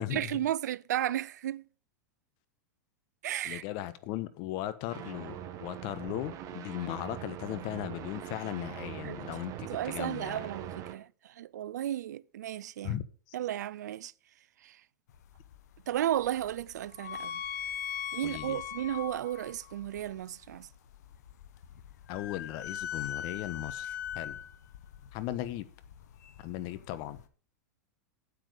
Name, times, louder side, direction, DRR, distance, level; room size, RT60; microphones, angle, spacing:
voice 1, 0.0-1.6 3.2-3.6 9.0-9.3 9.7-13.0 13.3-14.1 14.6-14.8 15.9-17.4 18.1-20.7, right 12 dB, 75° right, 0.5 m, -34 dB
voice 2, 3.4-10.4 12.8-13.0 13.3-13.4 18.2-18.6 22.1-24.4 25.1-25.7 26.4-27.2, left 14 dB, 50° left, 1.2 m, -37 dB
sound 1, 4.9-10.9, right 11 dB, 40° right, 1.3 m, -42 dB
sound 2, 15.1-27.3, left 9 dB, 70° left, 1.3 m, -41 dB
9.4 x 7.5 x 6.5 m
hypercardioid pair, 110°, 9 cm